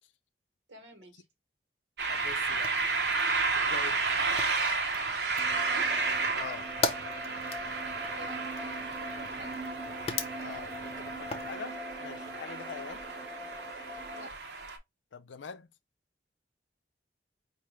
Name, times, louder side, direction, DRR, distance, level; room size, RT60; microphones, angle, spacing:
voice 1, 0.7-1.2 5.6-5.9 8.1-9.6 12.7-12.9 14.1-14.3, right 2 dB, 85° right, 1.4 m, -49 dB
sound 1, 2.0-14.8, right 4 dB, 60° right, 0.8 m, -32 dB
voice 2, 2.1-2.7 3.5-4.0 6.3-6.7 10.4-13.0 15.1-15.7, left 6 dB, 85° left, 0.5 m, -44 dB
Fire, 2.2-11.6, left 4 dB, 30° left, 0.5 m, -41 dB
sound 2, 5.4-14.3, equal, 5° right, 0.7 m, -43 dB
4.8 x 2.5 x 3.1 m
head